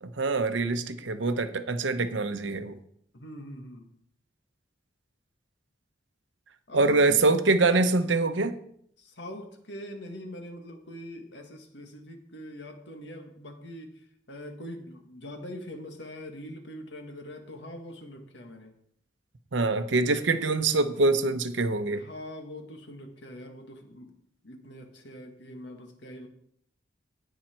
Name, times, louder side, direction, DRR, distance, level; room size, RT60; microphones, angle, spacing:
voice 1, 0.0-2.8 6.7-8.6 19.5-22.0, right 3 dB, 90° right, 9 dB, 0.9 m, -24 dB
voice 2, 3.1-3.9 6.7-7.2 9.0-18.7 21.9-24.1 24.4-26.3, left 1 dB, 70° left, 4 dB, 1.8 m, -43 dB
17.0 x 5.8 x 4.4 m, 0.68 s
head